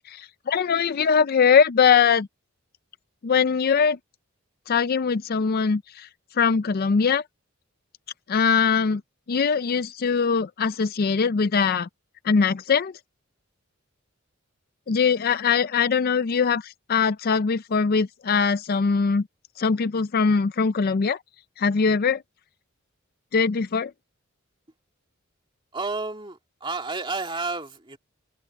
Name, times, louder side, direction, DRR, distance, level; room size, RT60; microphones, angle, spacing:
voice 1, 0.0-2.3 3.2-4.0 4.7-6.1 6.4-7.2 8.3-9.0 9.3-11.9 12.2-12.9 14.9-19.2 19.6-21.2 21.6-22.2 23.3-23.9, left 6 dB, 45° left, 0.4 m, -21 dB
voice 2, 25.7-28.0, right 3 dB, 25° right, 2.4 m, -31 dB
head